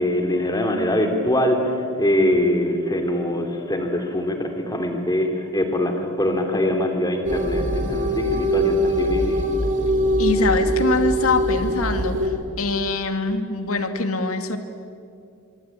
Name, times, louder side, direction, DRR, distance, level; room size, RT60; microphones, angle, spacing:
voice 1, 0.0-9.4, left 1 dB, 20° left, 4 dB, 3.0 m, -23 dB
sound 1, 7.3-12.3, equal, 35° right, 3.4 m, -22 dB
voice 2, 10.2-14.6, left 3 dB, 85° left, 7 dB, 2.1 m, -24 dB
25.0 x 24.0 x 8.9 m, 2.4 s
head